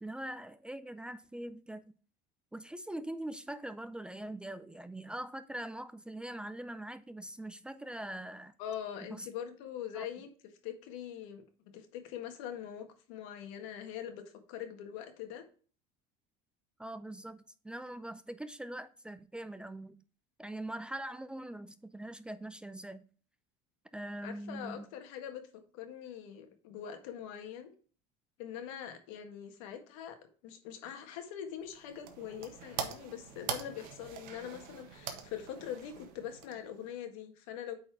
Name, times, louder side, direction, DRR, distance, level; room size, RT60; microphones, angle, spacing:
voice 1, 0.0-1.9 2.5-8.5 9.1-9.3 9.9-10.1 16.8-20.0 20.4-23.0 23.9-24.9, right 1 dB, 5° right, 0.4 m, -42 dB
voice 2, 8.6-10.3 10.6-14.2 14.5-15.4 24.2-25.4 25.7-27.7 28.4-30.2 30.4-37.7, left 9 dB, 90° left, 1.7 m, -43 dB
sound 1, 31.6-37.0, right 7 dB, 60° right, 1.5 m, -43 dB
8.5 x 4.3 x 4.7 m
cardioid pair, 145°, 16 cm